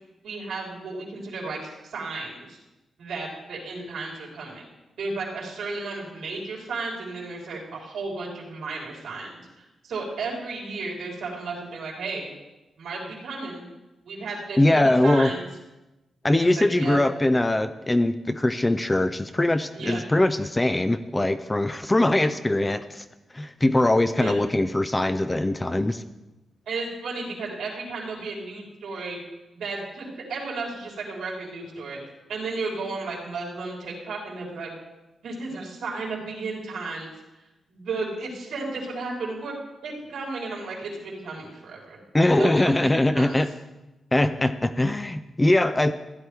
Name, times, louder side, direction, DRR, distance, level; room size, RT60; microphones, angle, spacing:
voice 1, 0.2-2.6 3.0-4.7 5.0-12.3 12.8-13.6 14.1-15.5 16.4-17.0 19.7-20.0 24.1-24.4 26.7-29.2 29.5-32.0 32.3-34.7 35.2-37.1 37.7-39.5 39.8-42.0 42.4-43.4, right 3 dB, 75° right, -3 dB, 3.9 m, -33 dB
voice 2, 14.6-15.3 16.2-23.0 23.3-26.0 42.1-43.5 44.1-45.9, left 1 dB, 10° left, 11 dB, 0.3 m, -22 dB
15.5 x 10.5 x 3.4 m, 1.0 s
wide cardioid pair, 175°, 0 cm